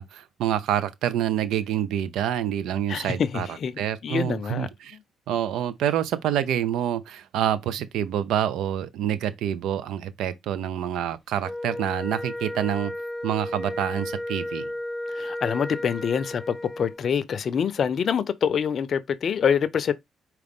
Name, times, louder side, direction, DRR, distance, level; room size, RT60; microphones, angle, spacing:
voice 1, 0.0-3.5 3.8-5.0 5.3-12.9 13.2-14.7, right 10 dB, 75° right, 0.5 m, -27 dB
voice 2, 2.9-5.0 15.1-19.9, left 7 dB, 55° left, 0.5 m, -26 dB
Wind instrument woodwind instrument, 11.4-17.0, left 1 dB, 5° left, 0.7 m, -33 dB
4.9 x 3.0 x 3.5 m
supercardioid pair, 55°, 0 cm